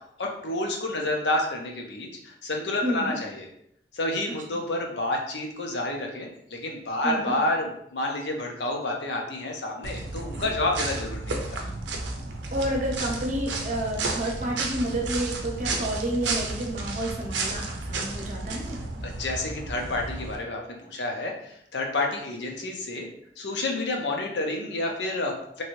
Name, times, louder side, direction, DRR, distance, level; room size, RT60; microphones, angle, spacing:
voice 1, 0.2-3.5 3.9-11.6 19.0-23.1 23.4-25.6, left 2 dB, 75° left, 1 dB, 0.7 m, -29 dB
voice 2, 2.8-3.2 4.5-4.6 7.0-7.3 12.5-18.8, right 1 dB, 45° right, 0 dB, 0.7 m, -30 dB
sound 1, 9.8-20.4, right 3 dB, 85° right, 0.5 m, -32 dB
3.1 x 2.7 x 3.0 m, 0.71 s
head